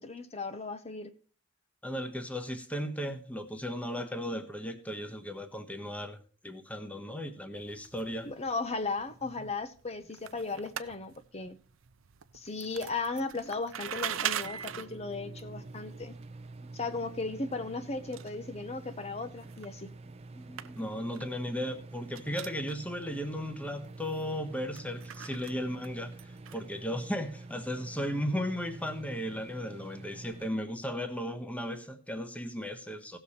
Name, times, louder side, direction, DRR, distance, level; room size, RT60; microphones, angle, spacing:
voice 1, 0.0-1.1 8.2-11.6 12.3-16.1 16.7-19.9, left 3 dB, 30° left, 0.7 m, -36 dB
voice 2, 1.8-6.2 6.4-8.3 20.3-26.1 26.5-33.2, equal, 5° left, 1.1 m, -36 dB
sound 1, 7.5-26.8, right 10 dB, 75° right, 0.6 m, -44 dB
sound 2, 14.3-30.5, right 3 dB, 30° right, 0.7 m, -47 dB
17.0 x 6.8 x 4.3 m
head